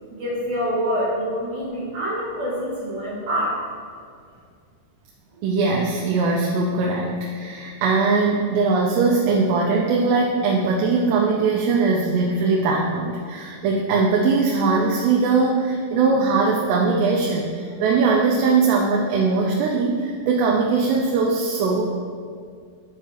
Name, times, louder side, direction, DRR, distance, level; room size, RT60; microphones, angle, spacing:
voice 1, 0.1-3.6, equal, 45° right, -14 dB, 2.6 m, -26 dB
voice 2, 5.4-21.8, right 4 dB, 85° right, -2 dB, 2.8 m, -20 dB
11.0 x 4.6 x 3.0 m, 2.1 s
omnidirectional pair, 4.9 m